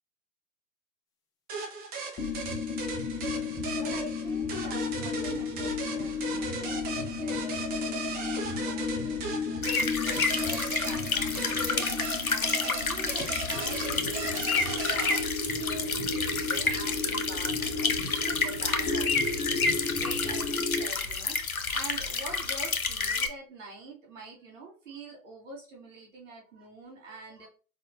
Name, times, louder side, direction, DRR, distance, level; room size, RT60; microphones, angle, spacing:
sound 1, 1.5-15.2, right 4 dB, 20° right, 1.1 m, -37 dB
sound 2, 2.2-20.9, left 4 dB, 10° left, 0.4 m, -34 dB
voice 1, 3.8-21.4 21.7-27.5, right 2 dB, 60° right, -2 dB, 2.7 m, -45 dB
sound 3, 9.6-23.3, left 4 dB, 85° left, 0.9 m, -30 dB
5.0 x 4.1 x 2.6 m, 0.37 s
figure-of-eight pair, 110°, 42 cm